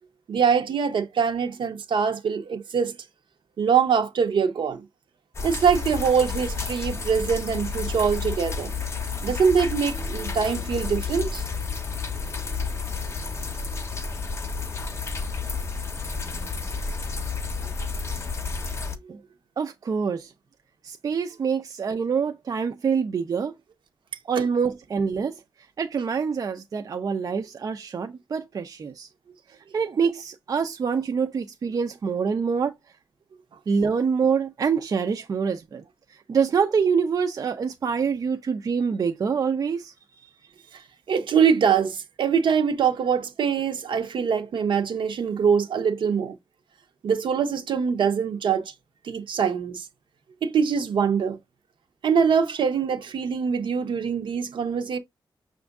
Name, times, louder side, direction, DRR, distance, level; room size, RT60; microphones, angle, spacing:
voice 1, 0.3-3.0 3.6-4.8 5.4-8.7 9.2-11.4 24.4-24.5 41.1-46.4 47.0-48.7 49.0-49.9 50.4-51.4 52.0-55.0, right 6 dB, 70° right, 0.8 m, -23 dB
sound 1, 5.3-19.0, left 4 dB, 30° left, 0.7 m, -31 dB
voice 2, 19.6-20.3 20.8-23.5 24.2-25.3 25.8-29.1 29.7-32.7 33.7-35.8 36.3-39.9, right 6 dB, 45° right, 0.5 m, -25 dB
6.1 x 2.5 x 3.4 m
wide cardioid pair, 140°, 9 cm